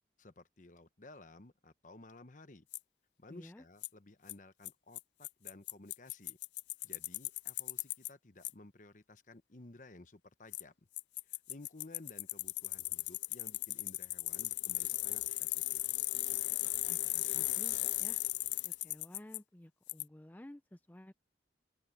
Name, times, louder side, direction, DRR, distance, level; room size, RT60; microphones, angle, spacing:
voice 1, 0.2-2.7 3.2-6.4 6.8-10.7 11.2-15.8, left 2 dB, 45° left, 1.1 m, -55 dB
Bicycle, 2.7-2.8 3.8-3.9 4.3-4.4 4.7-4.8 5.0-5.1 5.2-8.1 8.4-8.5 10.5-10.6 11.0-19.4 19.9-20.0, left 20 dB, 80° left, 0.3 m, -36 dB
voice 2, 3.3-3.6 16.9-18.2 18.6-21.1, left 1 dB, 10° left, 0.4 m, -53 dB
open air
head